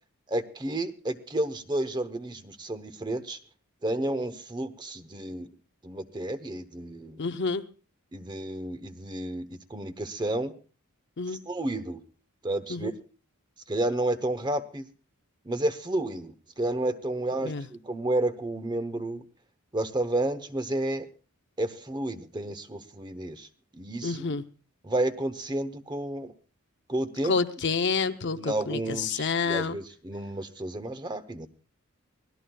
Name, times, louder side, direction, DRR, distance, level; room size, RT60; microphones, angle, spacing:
voice 1, 0.3-3.4 3.8-5.5 5.8-7.2 8.1-10.5 11.3-12.0 12.4-12.9 13.7-14.8 15.4-19.2 19.7-21.1 21.6-23.5 23.7-24.4 24.8-26.3 26.9-27.4 28.3-31.5, right 1 dB, 20° right, 11 dB, 0.9 m, -31 dB
voice 2, 7.2-7.6 11.2-11.4 12.7-12.9 17.4-17.6 24.0-24.4 27.3-29.8, left 4 dB, 55° left, 10 dB, 0.7 m, -28 dB
24.0 x 17.5 x 2.3 m, 0.36 s
head